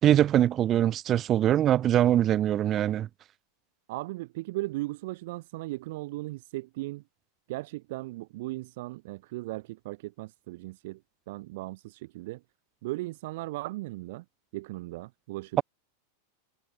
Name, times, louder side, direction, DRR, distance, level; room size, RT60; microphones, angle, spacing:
voice 1, 0.0-3.1, right 11 dB, 30° right, 3.2 m, -23 dB
voice 2, 3.9-7.0 7.5-11.0 11.3-12.4 12.8-14.2 14.5-15.6, right 19 dB, 50° right, 2.4 m, -37 dB
figure-of-eight pair, 90°, 0 cm